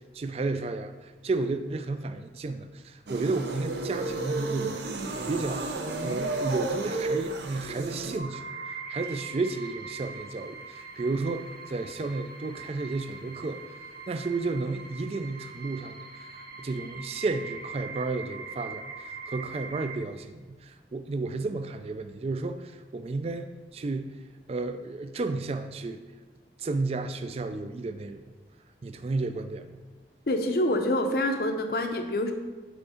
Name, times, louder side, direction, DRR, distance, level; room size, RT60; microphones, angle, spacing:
voice 1, 0.1-5.7 6.0-13.6 14.1-24.2 24.5-26.0 26.6-28.2 28.8-29.8, right 3 dB, 35° right, 9 dB, 0.3 m, -32 dB
sound 1, 3.1-8.2, right 2 dB, 75° right, 0.6 m, -32 dB
sound 2, 8.1-20.0, right 4 dB, 55° right, 0.9 m, -42 dB
voice 2, 30.3-32.3, left 1 dB, 60° left, 6 dB, 0.6 m, -26 dB
5.1 x 4.6 x 4.9 m, 1.3 s
head